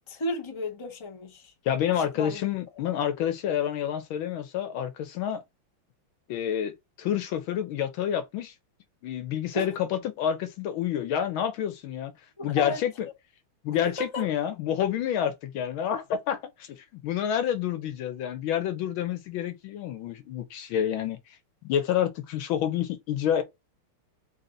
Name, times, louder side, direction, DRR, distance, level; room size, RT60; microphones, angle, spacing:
voice 1, 0.1-1.5 2.2-2.4 9.5-9.7 12.4-12.8 13.9-14.2, left 1 dB, 20° left, 0.8 m, -33 dB
voice 2, 1.6-5.4 6.3-8.5 9.0-12.1 12.4-13.1 13.6-23.4, left 9 dB, 75° left, 1.4 m, -29 dB
4.1 x 2.8 x 3.8 m
omnidirectional pair, 2.4 m